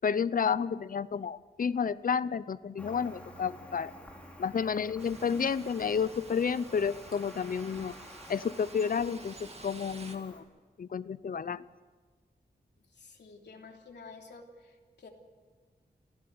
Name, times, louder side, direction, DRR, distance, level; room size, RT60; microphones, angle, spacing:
voice 1, 0.0-3.9 4.4-7.9 8.3-10.4 10.8-11.6, left 6 dB, 55° left, 17 dB, 0.7 m, -31 dB
Cricket, 2.8-10.4, equal, 5° left, 4.9 m, -51 dB
sound 1, 5.0-10.2, right 3 dB, 35° right, 2.1 m, -50 dB
voice 2, 12.8-15.1, left 4 dB, 75° left, 1 dB, 3.3 m, -51 dB
28.0 x 16.5 x 7.9 m, 1.5 s
wide cardioid pair, 115°, 18 cm